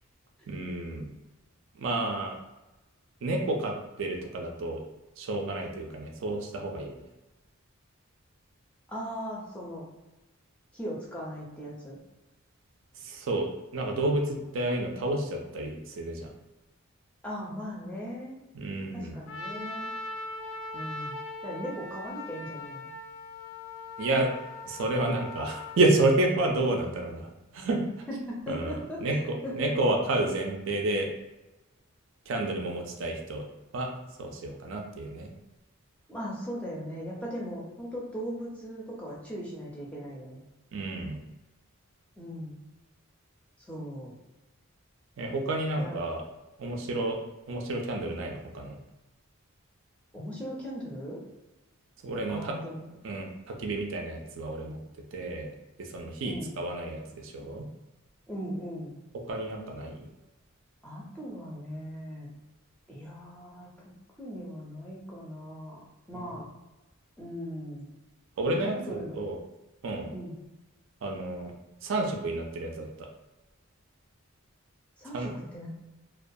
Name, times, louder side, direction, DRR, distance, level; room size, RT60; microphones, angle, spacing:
voice 1, 0.5-1.1 1.8-2.4 3.2-4.8 5.2-7.0 13.0-13.5 13.7-16.3 18.5-19.2 24.0-24.3 24.6-27.3 27.5-27.8 28.5-31.1 32.3-33.4 33.7-33.9 34.2-35.3 40.7-41.2 45.2-46.2 46.6-47.2 47.5-48.8 52.0-52.5 53.0-54.8 55.1-55.5 55.8-57.6 59.3-60.1 66.1-66.3 68.4-69.4 69.8-70.1 71.0-71.5 71.8-73.1 75.1-75.3, right 2 dB, 60° right, 2 dB, 0.4 m, -30 dB
voice 2, 8.9-9.8 10.7-12.0 17.2-18.4 18.9-19.9 20.7-22.9 28.1-29.7 36.1-40.4 42.2-42.6 43.7-44.1 45.8-46.0 50.1-51.2 52.3-52.8 56.2-56.6 58.3-59.0 60.8-62.3 62.9-63.7 64.2-65.8 66.1-66.5 67.2-67.9 68.6-69.2 70.1-70.3 75.0-75.7, equal, 5° left, -5 dB, 0.4 m, -38 dB
Trumpet, 19.3-25.8, left 2 dB, 65° left, 0.3 m, -40 dB
2.3 x 2.2 x 2.6 m, 1.0 s
head